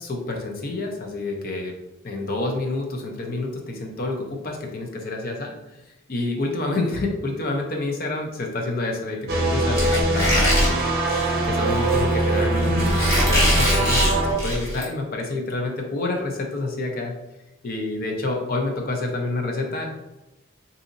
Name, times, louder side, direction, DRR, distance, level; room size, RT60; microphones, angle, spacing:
voice 1, 0.0-1.7 2.0-5.5 6.1-10.8 11.4-17.1 17.6-19.9, left 2 dB, 45° left, 1 dB, 0.6 m, -28 dB
sound 1, 9.3-14.3, right 2 dB, 50° right, 0.7 m, -22 dB
Squeak, 9.7-14.8, equal, 15° left, 1.1 m, -23 dB
3.8 x 2.8 x 2.5 m, 0.97 s
head